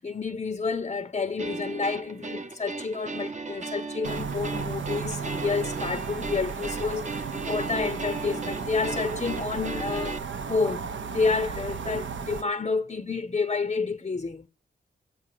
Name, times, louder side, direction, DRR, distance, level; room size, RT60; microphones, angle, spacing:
voice 1, 0.0-14.5, left 4 dB, 30° left, 0.6 m, -29 dB
sound 1, 1.4-10.2, right 3 dB, 35° right, 0.9 m, -37 dB
sound 2, 4.0-12.4, right 5 dB, 70° right, 0.8 m, -34 dB
7.6 x 5.0 x 6.7 m
cardioid pair, 40°, 20 cm